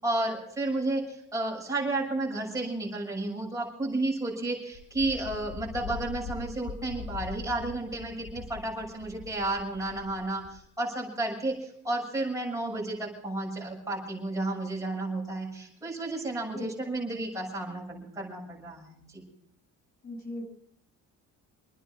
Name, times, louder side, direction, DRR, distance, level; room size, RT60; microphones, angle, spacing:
voice 1, 0.0-19.2, right 2 dB, 10° right, -3 dB, 6.9 m, -32 dB
Wind, 4.7-10.6, left 4 dB, 80° left, 4.4 m, -42 dB
voice 2, 20.0-20.4, left 1 dB, 30° left, 0 dB, 5.5 m, -37 dB
28.0 x 10.0 x 5.0 m, 0.66 s
cardioid pair, 170°, 33 cm